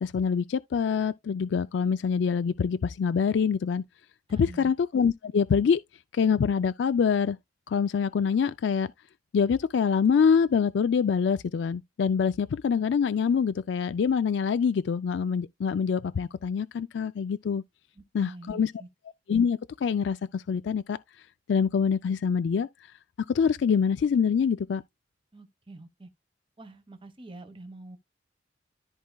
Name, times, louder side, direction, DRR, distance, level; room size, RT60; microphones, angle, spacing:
voice 1, 0.0-3.8 4.3-5.8 6.1-7.4 7.7-8.9 9.3-17.6 18.1-18.7 19.3-21.0 21.5-22.7 23.3-24.8, left 6 dB, 70° left, 0.3 m, -25 dB
voice 2, 4.3-4.8 18.0-18.9 25.3-26.1 26.6-28.0, right 2 dB, 30° right, 1.1 m, -46 dB
13.5 x 4.5 x 2.2 m
head